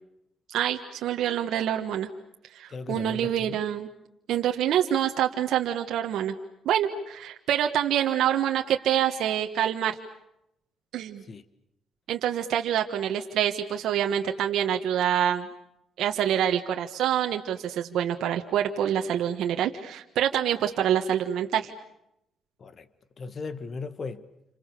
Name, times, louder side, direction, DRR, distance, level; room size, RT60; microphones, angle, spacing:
voice 1, 0.5-2.1 2.5-3.9 4.3-6.3 6.6-10.0 10.9-11.2 12.1-15.5 16.0-21.7, right 10 dB, 80° right, 1.5 m, -26 dB
voice 2, 2.7-3.6 11.2-11.4 22.6-22.9 23.2-24.3, left 4 dB, 45° left, 1.7 m, -37 dB
29.5 x 26.5 x 6.9 m
cardioid pair, 90°, 0 cm